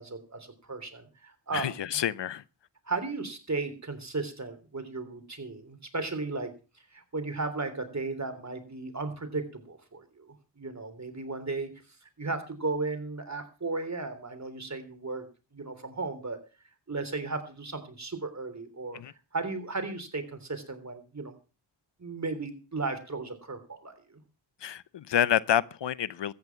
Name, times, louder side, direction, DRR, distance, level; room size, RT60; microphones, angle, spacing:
voice 1, 0.0-1.7 2.9-6.5 6.9-11.7 12.0-15.3 15.5-16.4 16.9-19.0 19.3-21.4 22.0-24.2, right 3 dB, 35° right, 3.4 m, -35 dB
voice 2, 1.5-2.4 18.9-19.1 24.6-26.3, left 10 dB, 65° left, 0.8 m, -28 dB
14.0 x 9.5 x 5.9 m
cardioid pair, 50°, 45 cm